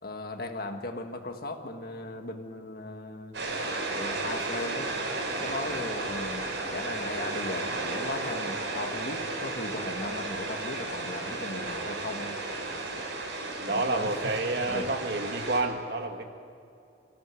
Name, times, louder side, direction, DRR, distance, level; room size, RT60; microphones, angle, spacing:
voice 1, 0.0-3.4 3.9-5.0 5.4-12.4 13.7-14.1 14.7-14.9, left 2 dB, 55° left, 5 dB, 1.8 m, -37 dB
sound 1, 3.3-15.6, right 2 dB, 85° right, 5.3 m, -34 dB
voice 2, 13.6-16.2, right 2 dB, 55° right, 5 dB, 1.8 m, -29 dB
23.5 x 16.5 x 9.9 m, 2.5 s
head